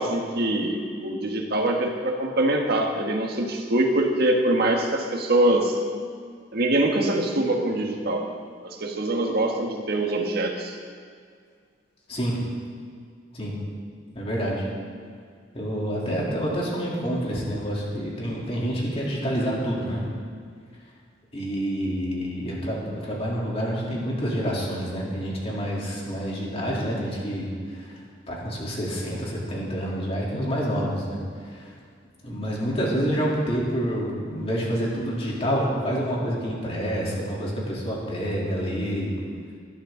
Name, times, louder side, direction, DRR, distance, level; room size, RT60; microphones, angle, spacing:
voice 1, 0.0-5.8 6.5-8.3 8.6-10.8, right 1 dB, 55° right, 2 dB, 1.6 m, -24 dB
voice 2, 14.1-14.7 15.5-20.0 21.3-28.0 28.3-31.7 32.2-39.1, equal, 30° left, -5 dB, 3.3 m, -28 dB
20.0 x 11.5 x 3.9 m, 2.1 s
head